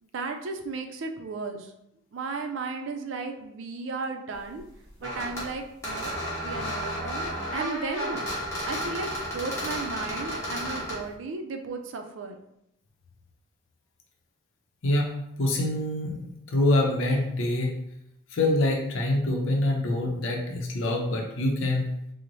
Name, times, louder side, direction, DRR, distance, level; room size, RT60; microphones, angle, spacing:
voice 1, 0.1-1.7 2.1-4.6 5.0-6.1 6.4-8.2 8.7-12.4, right 3 dB, 75° right, 5 dB, 0.4 m, -35 dB
sound 1, 5.0-5.5 5.8-11.0, equal, 15° left, 1.1 m, -32 dB
voice 2, 15.4-17.8 18.3-21.9, left 1 dB, 85° left, 1 dB, 0.6 m, -25 dB
3.9 x 2.0 x 3.0 m, 0.79 s
head